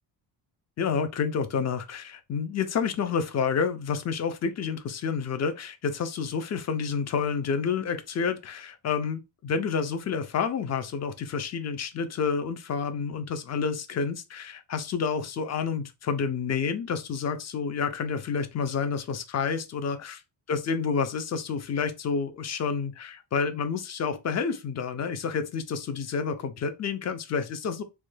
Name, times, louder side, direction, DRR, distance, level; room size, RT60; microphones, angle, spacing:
voice 1, 0.8-20.2 20.5-27.8, left 6 dB, 35° left, 0.4 m, -29 dB
3.1 x 2.2 x 3.2 m
wide cardioid pair, 170°, 46 cm